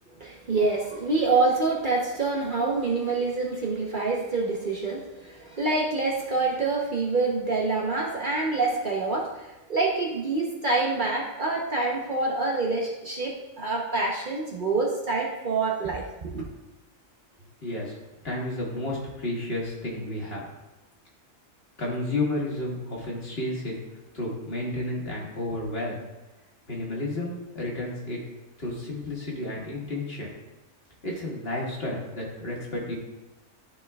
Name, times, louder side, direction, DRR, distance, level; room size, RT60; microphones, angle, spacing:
voice 1, 0.2-16.4, right 3 dB, 45° right, -2 dB, 0.9 m, -26 dB
voice 2, 17.6-18.0 18.2-20.4 21.8-23.8 24.1-26.1 26.7-28.2 28.6-30.3 31.0-32.9, left 1 dB, 50° left, -4 dB, 1.8 m, -31 dB
12.0 x 4.9 x 2.3 m, 1.1 s
omnidirectional pair, 1.4 m